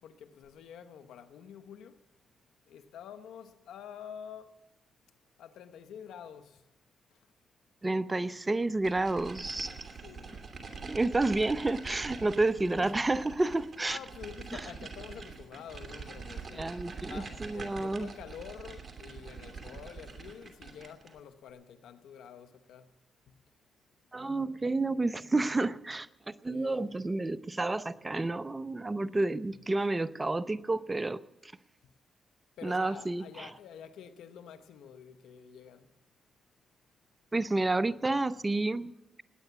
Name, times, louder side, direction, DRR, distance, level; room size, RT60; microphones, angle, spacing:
voice 1, 0.0-2.0 2.7-4.6 5.4-6.7 7.1-7.2 10.0-10.4 12.4-12.9 13.8-16.8 17.0-22.9 23.3-23.4 26.5-26.8 29.5-30.0 31.8-31.9 32.6-35.9, left 8 dB, 80° left, 1.0 m, -48 dB
voice 2, 7.8-9.8 10.8-14.0 16.5-18.1 24.1-31.5 32.6-33.5 37.3-38.9, right 2 dB, 25° right, 0.7 m, -30 dB
sound 1, 8.8-21.2, right 4 dB, 45° right, 2.8 m, -45 dB
19.5 x 9.3 x 7.1 m
supercardioid pair, 55°, 0 cm